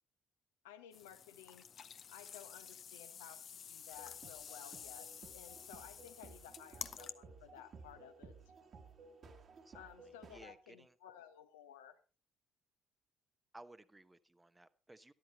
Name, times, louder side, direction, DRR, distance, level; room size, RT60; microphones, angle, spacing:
voice 1, 0.6-5.1 5.3-8.4 9.7-12.0, left 10 dB, 75° left, 9 dB, 1.2 m, -56 dB
Pouring Soda into Glass, 0.9-7.1, left 7 dB, 45° left, 0.8 m, -50 dB
sound 1, 3.9-10.5, right 4 dB, 45° right, 2.0 m, -57 dB
voice 2, 9.6-10.9 13.5-15.1, right 2 dB, 15° right, 13 dB, 1.0 m, -59 dB
13.0 x 12.0 x 4.2 m, 0.34 s
figure-of-eight pair, 45°, 0 cm